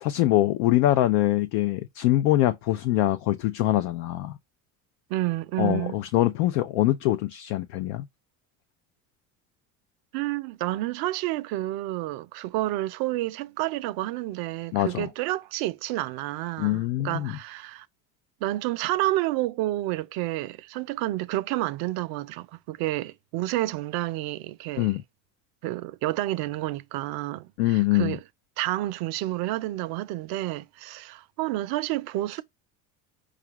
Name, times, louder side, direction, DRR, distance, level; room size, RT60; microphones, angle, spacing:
voice 1, 0.0-4.4 5.6-8.1 14.7-15.1 16.6-17.4 24.8-25.0 27.6-28.2, left 15 dB, 75° left, 0.6 m, -23 dB
voice 2, 5.1-6.0 10.1-17.9 18.4-24.9 25.6-28.2 28.6-32.4, right 16 dB, 60° right, 0.6 m, -30 dB
4.9 x 2.4 x 2.9 m
supercardioid pair, 105°, 41 cm